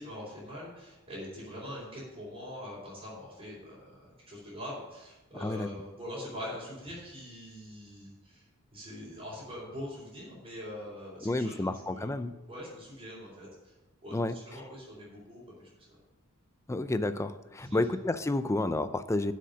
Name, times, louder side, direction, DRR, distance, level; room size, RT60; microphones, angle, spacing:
voice 1, 0.0-8.5 8.7-13.7 14.0-16.0 17.6-17.8, equal, 25° right, -11 dB, 3.8 m, -43 dB
voice 2, 11.2-12.3 14.1-14.4 16.7-19.3, left 2 dB, 15° left, 12 dB, 0.4 m, -30 dB
7.6 x 6.6 x 6.7 m, 1.1 s
head